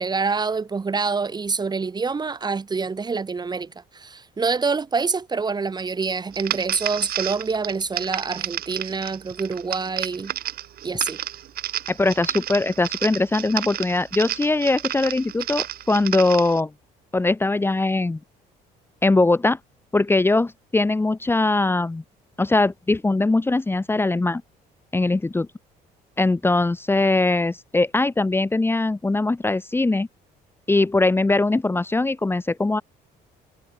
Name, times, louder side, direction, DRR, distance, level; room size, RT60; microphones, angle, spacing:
voice 1, 0.0-10.3 10.8-11.2, right 4 dB, 25° right, 2.1 m, -26 dB
sound 1, 6.3-16.6, right 12 dB, 65° right, 3.1 m, -31 dB
voice 2, 11.9-16.7 17.1-18.2 19.0-19.6 19.9-22.0 22.4-24.4 24.9-25.5 26.2-30.1 30.7-32.8, left 2 dB, 15° left, 1.3 m, -21 dB
cardioid pair, 110°, 17 cm